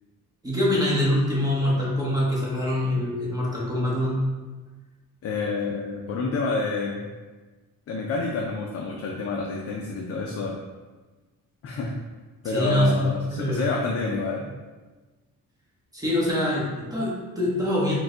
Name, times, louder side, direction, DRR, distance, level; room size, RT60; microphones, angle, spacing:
voice 1, 0.4-4.2 12.4-13.6 15.9-17.9, left 1 dB, 10° right, -6 dB, 0.9 m, -24 dB
voice 2, 5.2-7.0 7.9-10.6 11.6-12.0 12.4-14.5, left 4 dB, 40° left, -1 dB, 0.4 m, -28 dB
4.5 x 2.3 x 3.7 m, 1.3 s
cardioid pair, 165°, 36 cm